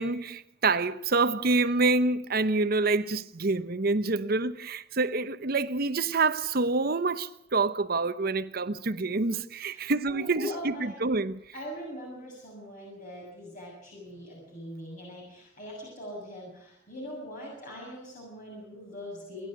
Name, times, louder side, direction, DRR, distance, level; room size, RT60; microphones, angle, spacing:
voice 1, 0.0-11.4, right 3 dB, 55° right, 0.9 m, -27 dB
voice 2, 9.7-10.9 11.5-19.5, left 1 dB, 45° left, 7.2 m, -41 dB
28.0 x 11.5 x 9.5 m
head